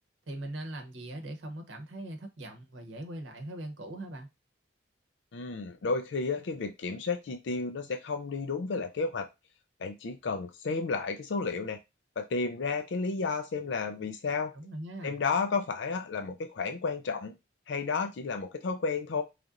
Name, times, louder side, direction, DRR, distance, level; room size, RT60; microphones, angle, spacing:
voice 1, 0.3-4.3 14.5-15.2, right 1 dB, 85° right, 0.9 m, -40 dB
voice 2, 5.3-9.3 9.8-11.8 12.2-14.5 15.0-17.3 17.7-19.2, left 4 dB, 75° left, 0.4 m, -32 dB
4.0 x 3.3 x 2.4 m
head